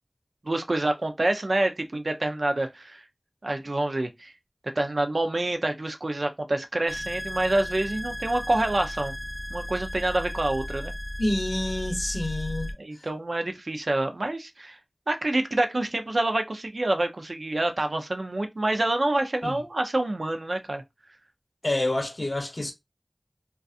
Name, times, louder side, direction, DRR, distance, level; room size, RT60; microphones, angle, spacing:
voice 1, 0.4-3.0 3.4-4.3 4.8-9.1 9.5-10.9 12.8-14.8 15.1-20.8, right 2 dB, 85° right, 0.4 m, -27 dB
sound 1, 6.9-12.7, equal, 15° right, 0.8 m, -35 dB
voice 2, 11.2-12.7 19.4-19.5 21.6-22.7, left 1 dB, 65° left, 0.6 m, -28 dB
2.6 x 2.3 x 2.3 m
wide cardioid pair, 40°, 0 cm